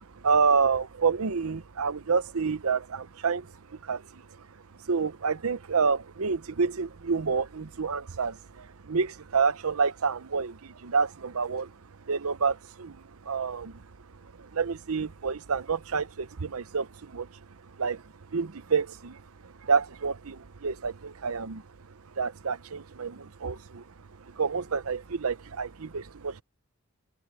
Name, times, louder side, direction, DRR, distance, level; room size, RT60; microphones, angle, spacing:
voice 1, 0.2-3.5 3.8-4.2 4.9-11.7 12.1-13.0 13.3-13.8 14.4-17.3 17.8-18.0 18.3-19.2 19.6-21.6 22.2-23.8 24.4-26.4, right 5 dB, 80° right, 0.8 m, -28 dB
head